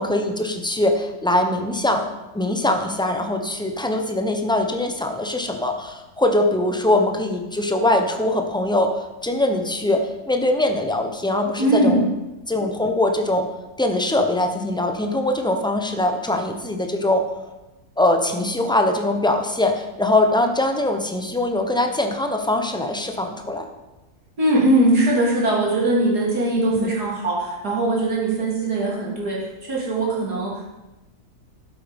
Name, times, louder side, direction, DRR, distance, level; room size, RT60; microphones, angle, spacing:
voice 1, 0.0-12.0 12.5-13.5 13.8-17.2 18.0-23.6 26.7-26.9, left 1 dB, 5° left, 4 dB, 0.8 m, -22 dB
voice 2, 11.6-12.0 24.4-30.7, right 1 dB, 80° right, -4 dB, 3.8 m, -21 dB
11.5 x 8.2 x 5.3 m, 1.0 s
omnidirectional pair, 1.7 m